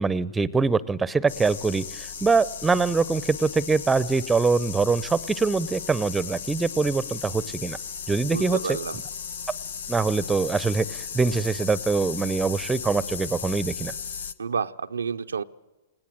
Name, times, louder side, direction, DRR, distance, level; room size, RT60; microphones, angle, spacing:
voice 1, 0.0-7.8 8.1-8.8 9.9-13.9, right 4 dB, 10° right, 20 dB, 0.7 m, -24 dB
sound 1, 1.3-14.3, left 7 dB, 75° left, 0.9 m, -36 dB
voice 2, 8.3-9.0 14.4-15.4, right 6 dB, 90° right, 8 dB, 0.6 m, -29 dB
20.0 x 17.5 x 7.6 m, 1.1 s
hypercardioid pair, 115°, 0 cm